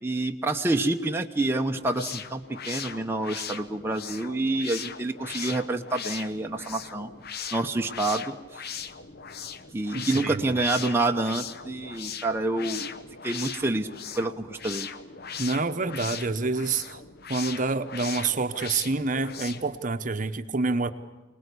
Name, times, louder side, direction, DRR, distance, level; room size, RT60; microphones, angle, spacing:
voice 1, 0.0-7.1 7.5-8.6 9.7-12.9 13.2-13.9 14.1-14.9, right 2 dB, 10° right, 3 dB, 0.8 m, -28 dB
sound 1, 1.7-19.8, left 7 dB, 55° left, 0.9 m, -39 dB
voice 2, 9.9-10.5 15.4-17.0 17.3-20.9, right 3 dB, 45° right, 9 dB, 0.9 m, -27 dB
25.0 x 19.5 x 8.4 m, 1.1 s
head